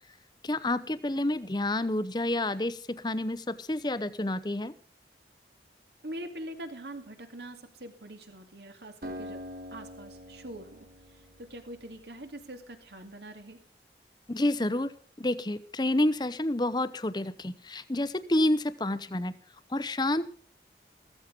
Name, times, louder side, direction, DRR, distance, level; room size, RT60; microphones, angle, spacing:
voice 1, 0.4-4.7 14.3-14.9 15.2-19.4 19.7-20.3, left 1 dB, 25° left, 15 dB, 0.8 m, -29 dB
voice 2, 6.0-9.4 9.7-13.6, right 1 dB, 70° right, 6 dB, 2.4 m, -43 dB
Acoustic guitar, 9.0-12.6, equal, 55° right, 3.1 m, -45 dB
15.0 x 14.5 x 5.2 m, 0.43 s
head